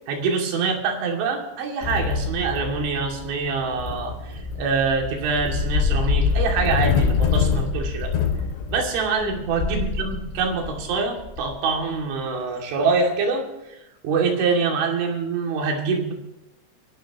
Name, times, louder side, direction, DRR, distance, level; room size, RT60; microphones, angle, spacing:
voice 1, 0.1-8.1 8.7-13.5 14.0-16.1, right 4 dB, 80° right, 2 dB, 5.0 m, -25 dB
sound 1, 1.8-12.0, left 5 dB, 85° left, 5.0 m, -25 dB
26.0 x 12.0 x 3.0 m, 0.92 s
omnidirectional pair, 5.4 m